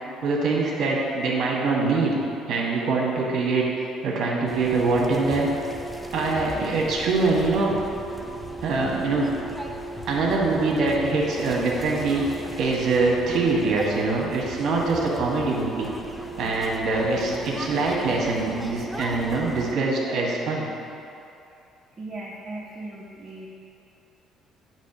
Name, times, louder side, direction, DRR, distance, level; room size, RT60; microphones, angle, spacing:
voice 1, 0.2-2.2 2.5-3.6 4.0-5.5 6.1-7.8 8.6-9.3 10.1-12.2 12.6-15.9 16.4-20.7, right 3 dB, 60° right, -3 dB, 1.4 m, -23 dB
sound 1, 4.5-19.7, left 1 dB, 5° left, 0.4 m, -39 dB
sound 2, 5.1-17.8, right 3 dB, 85° right, 0.8 m, -39 dB
voice 2, 22.0-23.5, right 2 dB, 30° right, -7 dB, 1.1 m, -37 dB
8.1 x 3.1 x 5.9 m, 2.7 s
cardioid pair, 105°, 0 cm